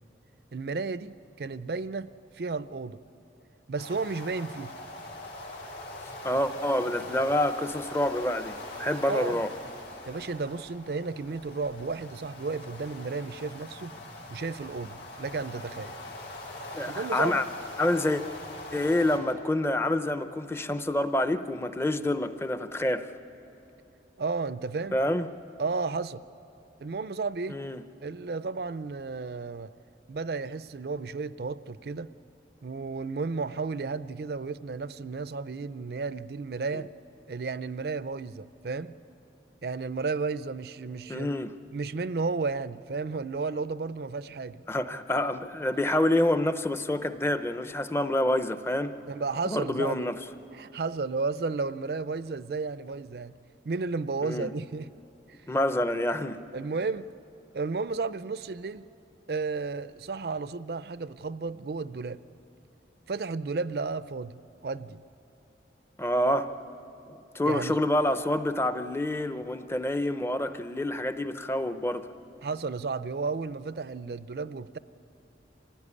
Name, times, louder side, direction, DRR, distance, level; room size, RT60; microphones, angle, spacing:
voice 1, 0.5-2.1 2.3-3.0 3.7-4.7 9.1-9.4 10.1-14.0 14.3-16.0 16.9-17.4 24.2-25.0 25.6-26.2 26.8-27.6 28.0-29.8 30.1-32.1 32.6-36.9 37.3-38.9 39.6-41.3 41.7-44.6 49.0-50.1 50.5-53.3 53.6-54.9 55.3-55.4 56.5-57.1 57.5-58.9 59.3-62.2 63.1-65.0 67.5-67.8 72.4-74.8, right 4 dB, 60° right, 15 dB, 0.5 m, -33 dB
sound 1, 3.8-19.2, left 1 dB, 80° left, 4.2 m, -42 dB
voice 2, 6.2-9.5 16.7-17.4 17.8-18.2 18.7-23.1 24.9-25.3 27.5-27.8 41.1-41.5 44.7-48.9 49.4-50.2 54.2-54.5 55.5-56.4 66.0-66.5 67.1-72.1, left 1 dB, 15° left, 10 dB, 0.6 m, -27 dB
25.5 x 16.0 x 9.8 m, 3.0 s
head